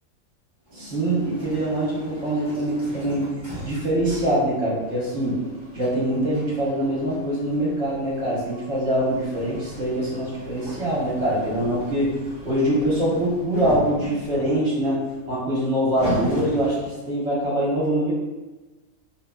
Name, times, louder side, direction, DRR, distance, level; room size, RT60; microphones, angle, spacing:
sound 1, 0.7-17.1, right 1 dB, 20° right, 0.9 m, -38 dB
voice 1, 0.7-3.3 3.6-5.4 5.7-12.2 12.4-15.0 15.3-18.1, right 1 dB, 55° right, -8 dB, 1.4 m, -24 dB
3.0 x 2.6 x 2.3 m, 1.2 s
omnidirectional pair, 1.5 m